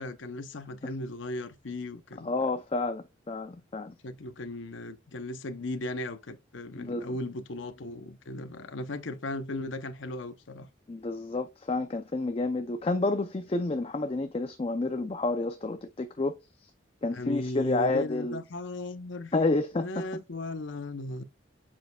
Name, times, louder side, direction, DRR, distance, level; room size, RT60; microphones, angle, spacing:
voice 1, 0.0-2.3 4.0-10.7 17.1-19.3 19.7-21.2, left 1 dB, 75° left, 0.8 m, -36 dB
voice 2, 2.2-3.9 6.7-7.2 10.9-16.4 17.0-18.4 19.3-20.0, left 2 dB, 30° left, 0.4 m, -30 dB
7.5 x 6.1 x 2.3 m
head